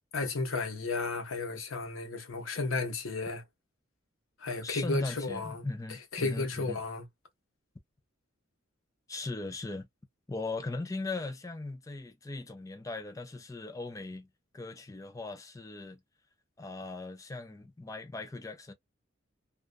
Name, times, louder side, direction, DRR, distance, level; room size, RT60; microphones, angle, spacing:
voice 1, 0.1-3.4 4.4-5.7 6.1-7.0, left 3 dB, 85° left, 0.9 m, -33 dB
voice 2, 4.6-6.8 9.1-9.9 10.3-14.3 14.5-16.0 16.6-18.7, left 3 dB, 15° left, 0.4 m, -38 dB
2.4 x 2.3 x 2.5 m
head